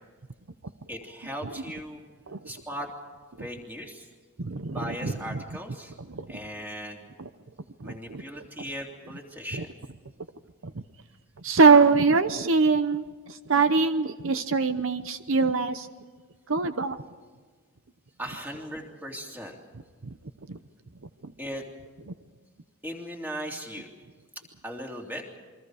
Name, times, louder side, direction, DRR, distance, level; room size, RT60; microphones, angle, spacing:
voice 1, 0.9-2.0 2.4-2.9 3.4-4.1 4.7-5.9 6.3-7.0 7.8-9.8 18.2-19.6 21.4-21.6 22.8-23.9 24.6-25.2, equal, 10° right, 0 dB, 3.2 m, -38 dB
voice 2, 4.4-5.4 6.1-6.3 7.2-7.3 7.8-8.2 9.5-9.6 10.6-10.7 11.4-15.9 16.5-17.0 20.0-20.1 20.5-20.6 21.2-21.3, right 4 dB, 65° right, 10 dB, 0.8 m, -23 dB
28.5 x 23.5 x 4.9 m, 1.5 s
head